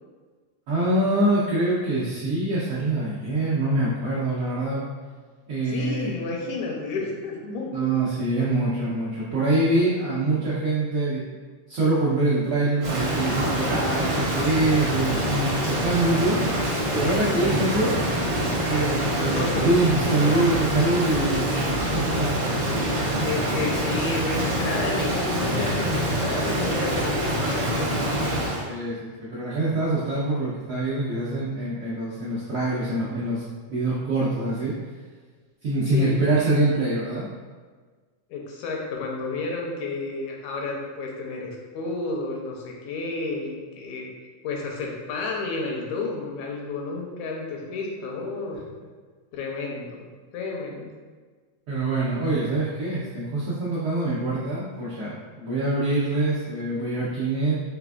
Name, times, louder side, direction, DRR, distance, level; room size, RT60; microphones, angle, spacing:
voice 1, 0.7-4.8 5.5-6.2 7.7-11.2 11.7-16.4 16.9-17.9 18.7-22.3 28.7-33.4 33.7-34.8 35.6-37.3 51.7-57.5, right 2 dB, 80° right, -9 dB, 1.3 m, -24 dB
voice 2, 5.7-7.9 19.2-19.7 20.3-20.4 23.2-28.1 35.9-36.3 38.3-44.1 44.4-48.6 49.3-50.1 50.3-50.9, left 3 dB, 80° left, -1 dB, 1.9 m, -31 dB
Rain, 12.8-28.7, right 1 dB, 65° right, 1.1 m, -25 dB
4.9 x 3.3 x 2.3 m, 1.5 s
omnidirectional pair, 3.3 m